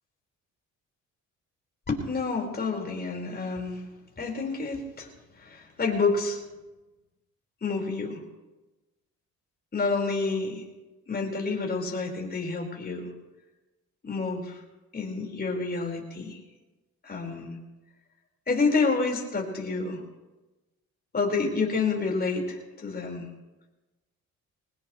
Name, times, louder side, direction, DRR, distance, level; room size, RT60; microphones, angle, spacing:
voice 1, 1.9-3.8 4.2-5.1 5.3-6.4 7.6-8.2 9.7-10.6 11.1-13.1 14.0-14.6 14.9-16.4 17.0-17.6 18.5-20.0 21.1-23.3, left 4 dB, 30° left, 0 dB, 4.9 m, -28 dB
22.5 x 19.0 x 3.2 m, 1.1 s
cardioid pair, 90°, 30 cm